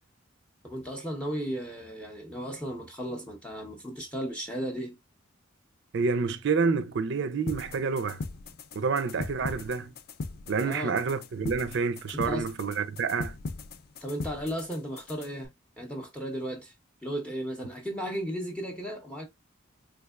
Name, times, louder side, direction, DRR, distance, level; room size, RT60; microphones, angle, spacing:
voice 1, 0.6-5.0 10.6-11.0 12.1-12.5 14.0-15.5 15.8-16.7 17.0-19.3, equal, 5° left, 0.6 m, -35 dB
voice 2, 5.9-8.2 8.7-9.9 10.5-13.3, right 5 dB, 60° right, 0.4 m, -28 dB
sound 1, 7.5-15.4, left 3 dB, 50° left, 0.4 m, -39 dB
3.5 x 3.2 x 2.3 m
head